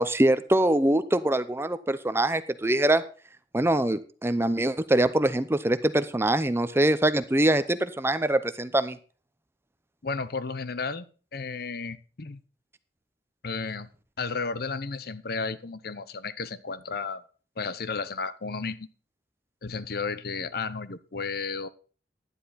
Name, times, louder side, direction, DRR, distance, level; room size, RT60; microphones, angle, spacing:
voice 1, 0.0-3.0 3.5-9.0, right 1 dB, 15° right, 13 dB, 0.6 m, -23 dB
voice 2, 10.0-11.1 11.3-12.4 13.4-13.9 14.2-17.2 17.6-18.9 19.6-21.7, left 4 dB, 60° left, 15 dB, 0.8 m, -33 dB
11.5 x 10.5 x 4.1 m, 0.38 s
head